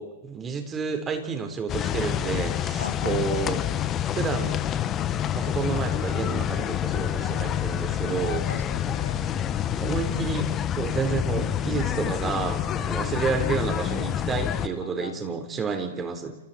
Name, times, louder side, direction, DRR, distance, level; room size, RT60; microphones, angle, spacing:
voice 1, 0.0-3.6 4.1-4.6 5.3-8.5 9.8-16.4, right 5 dB, 20° right, 6 dB, 4.2 m, -30 dB
sound 1, 1.7-14.7, left 10 dB, 30° left, 1.5 m, -27 dB
voice 2, 2.8-4.0 7.2-7.6 8.2-9.7 13.0-13.2 14.8-15.4, left 6 dB, 80° left, 11 dB, 2.1 m, -39 dB
29.0 x 28.5 x 4.4 m, 1.0 s
hypercardioid pair, 110°, 0 cm